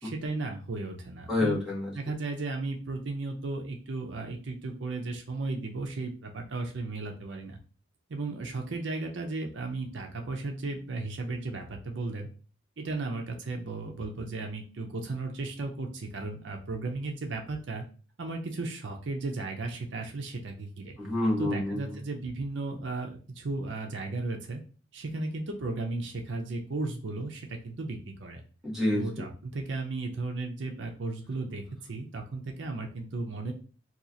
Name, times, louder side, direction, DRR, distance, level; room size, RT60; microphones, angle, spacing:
voice 1, 0.0-1.6 1.9-7.6 8.1-12.3 12.8-17.8 18.2-21.0 21.4-24.6 24.9-28.4 28.9-31.6 31.9-33.5, right 3 dB, 65° right, 2 dB, 0.6 m, -35 dB
voice 2, 1.3-1.9 21.0-22.0 28.6-29.2, left 1 dB, ahead, -5 dB, 1.1 m, -28 dB
2.9 x 2.4 x 3.7 m, 0.37 s
head